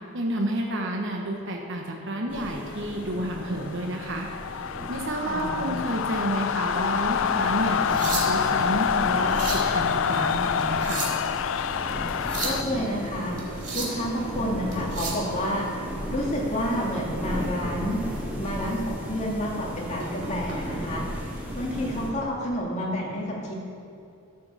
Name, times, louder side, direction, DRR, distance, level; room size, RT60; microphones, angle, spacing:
voice 1, 0.1-4.3 4.9-11.1, right 1 dB, 55° right, 1 dB, 1.0 m, -30 dB
sound 1, 2.3-22.1, equal, 10° right, 2.3 m, -35 dB
sound 2, 2.7-12.6, left 7 dB, 60° left, 0.3 m, -27 dB
voice 2, 5.3-5.9 12.4-13.4 13.7-15.7 16.1-18.0 18.4-21.1 21.5-23.5, equal, 30° left, -3 dB, 2.2 m, -29 dB
sound 3, 7.7-8.6 9.1-9.7 10.6-11.3 12.1-12.6 13.4-14.0 14.7-15.3 17.3-17.5 18.0-18.2 18.7-18.8 20.0-20.6 21.7-21.9, right 3 dB, 35° right, 2.1 m, -33 dB
12.5 x 6.8 x 6.8 m, 2.6 s
head